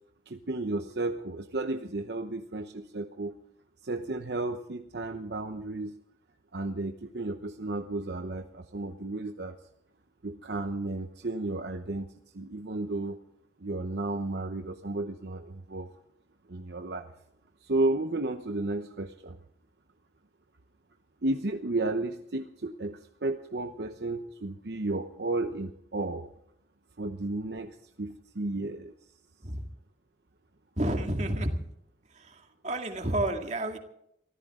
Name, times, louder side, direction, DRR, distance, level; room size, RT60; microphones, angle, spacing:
voice 1, 0.3-3.3 3.8-5.9 6.5-9.5 10.2-13.2 13.6-15.9 16.5-17.1 17.6-19.4 21.2-26.3 27.0-28.9, right 2 dB, 65° right, 6 dB, 0.9 m, -33 dB
voice 2, 30.8-31.6 32.1-33.8, right 1 dB, 40° right, 4 dB, 2.2 m, -30 dB
24.0 x 15.0 x 3.8 m, 0.75 s
head